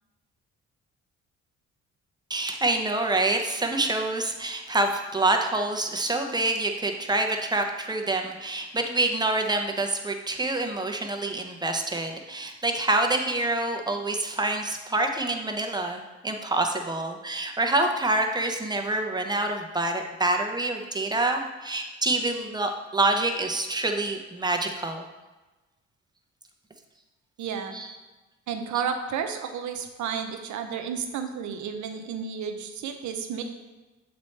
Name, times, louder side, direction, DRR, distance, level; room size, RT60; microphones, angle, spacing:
voice 1, 2.3-25.1 27.7-27.9, right 2 dB, 15° right, 3 dB, 0.7 m, -26 dB
voice 2, 27.4-27.7 28.5-33.4, right 7 dB, 75° right, 6 dB, 0.7 m, -32 dB
6.9 x 4.2 x 3.3 m, 1.2 s
cardioid pair, 90°, 30 cm